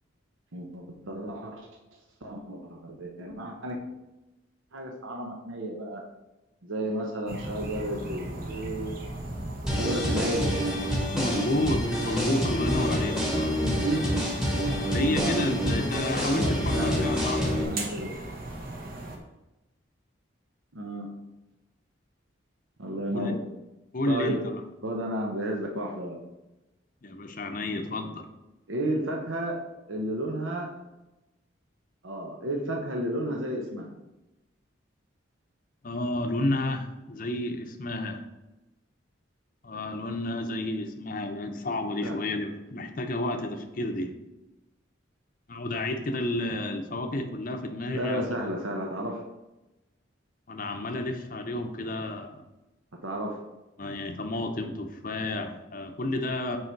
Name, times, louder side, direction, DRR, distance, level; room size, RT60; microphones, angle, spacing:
voice 1, 0.5-1.7 2.2-3.8 4.7-6.0 6.6-8.9 9.7-10.6 13.6-14.2 14.9-15.4 16.2-17.2 17.4-18.2 20.7-21.2 22.8-23.4 24.1-24.5 24.8-26.3 28.7-30.8 32.0-33.9 42.0-42.3 47.9-49.2 52.9-53.4, right 1 dB, 85° right, 1 dB, 0.9 m, -32 dB
sound 1, 7.3-19.2, right 1 dB, 45° right, 1.0 m, -38 dB
sound 2, 9.7-17.6, equal, 5° right, 1.2 m, -27 dB
voice 2, 11.1-13.6 14.9-17.6 23.1-23.3 23.9-24.6 27.0-28.3 35.8-38.2 39.6-44.2 45.5-48.5 50.5-52.4 53.8-56.6, left 1 dB, 45° left, 5 dB, 0.7 m, -31 dB
6.4 x 4.8 x 4.6 m, 0.99 s
head